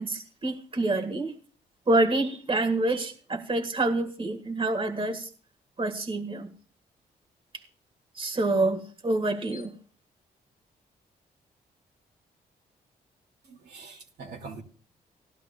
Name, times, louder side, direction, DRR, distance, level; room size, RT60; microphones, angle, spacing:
voice 1, 0.0-1.3 1.9-5.3 5.8-6.5 8.2-9.7, right 2 dB, 30° right, 1.7 m, -27 dB
voice 2, 13.5-14.6, right 4 dB, 75° right, 2.4 m, -43 dB
18.5 x 12.0 x 2.3 m
supercardioid pair, 55°, 17 cm